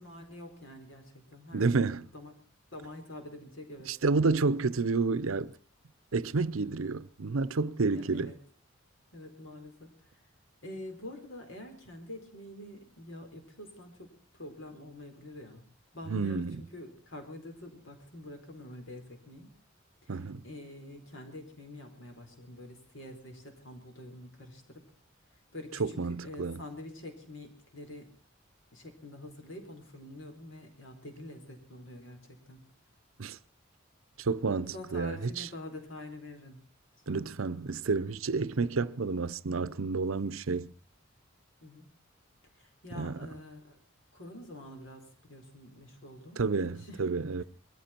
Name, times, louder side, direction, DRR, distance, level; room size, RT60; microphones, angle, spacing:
voice 1, 0.0-1.7 2.1-2.3 2.7-4.0 7.9-8.3 9.1-9.9 10.6-15.6 15.9-19.5 20.0-20.1 20.4-24.8 25.5-28.1 28.7-32.6 34.7-36.6 37.1-37.3 41.6-41.9 42.6-43.8 44.1-47.1 47.4-47.5, left 1 dB, 70° left, 4.6 m, -46 dB
voice 2, 1.5-2.1 3.9-5.5 6.1-8.3 16.1-16.6 20.1-20.4 25.8-26.6 33.2-33.4 34.2-35.5 37.1-40.7 43.0-43.2 46.4-47.4, right 4 dB, 85° right, 0.7 m, -30 dB
21.5 x 14.5 x 4.4 m
head